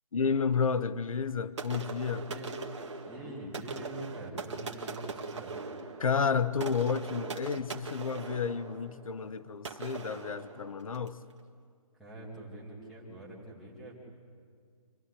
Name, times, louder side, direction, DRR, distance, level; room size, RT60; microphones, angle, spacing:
voice 1, 0.1-2.3 6.0-11.2, left 6 dB, 60° left, 0.9 m, -31 dB
sound 1, 1.6-11.2, right 4 dB, 45° right, 1.7 m, -41 dB
voice 2, 3.0-5.5 12.0-14.0, right 1 dB, ahead, 2.3 m, -44 dB
27.0 x 15.0 x 9.9 m
hypercardioid pair, 175°, 20 cm